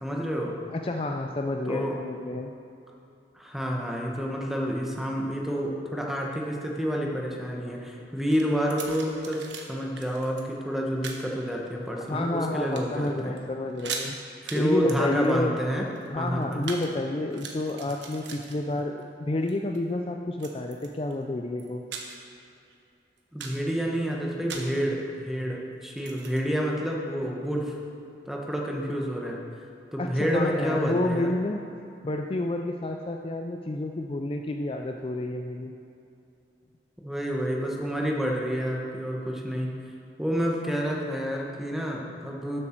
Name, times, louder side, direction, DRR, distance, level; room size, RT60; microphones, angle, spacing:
voice 1, 0.0-0.5 1.7-2.0 3.3-13.4 14.4-15.9 16.2-16.6 23.3-27.7 28.3-29.4 29.9-31.3 37.0-39.7 40.2-42.6, equal, ahead, -1 dB, 1.1 m, -29 dB
voice 2, 0.7-2.5 12.1-14.2 14.5-15.6 16.1-21.8 30.0-31.6 32.0-35.7, left 2 dB, 30° left, 3 dB, 0.4 m, -29 dB
sound 1, 8.3-9.6 10.0-10.4 11.0-11.3 11.9-12.4 12.7-13.1 13.4-13.5 13.7-14.1 14.5-14.6 14.9-16.9 17.2-19.0 19.4-19.8 20.4-21.1 21.6-22.3 22.7-22.8 23.2-23.7 24.5-24.8 25.9-26.4, right 5 dB, 85° right, 1.2 m, -39 dB
12.0 x 7.8 x 4.5 m, 2.6 s
head